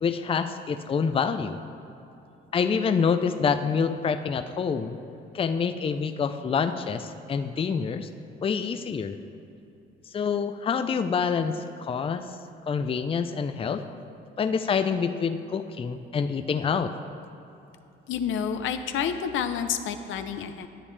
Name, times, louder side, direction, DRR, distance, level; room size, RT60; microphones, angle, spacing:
voice 1, 0.0-1.6 2.5-5.0 5.3-8.1 8.4-9.2 10.1-12.2 12.7-13.8 14.4-16.9, left 6 dB, 30° left, 9 dB, 0.4 m, -26 dB
voice 2, 18.1-20.7, left 7 dB, 80° left, 9 dB, 0.5 m, -29 dB
10.0 x 8.5 x 3.3 m, 2.9 s
cardioid pair, 90°, 20 cm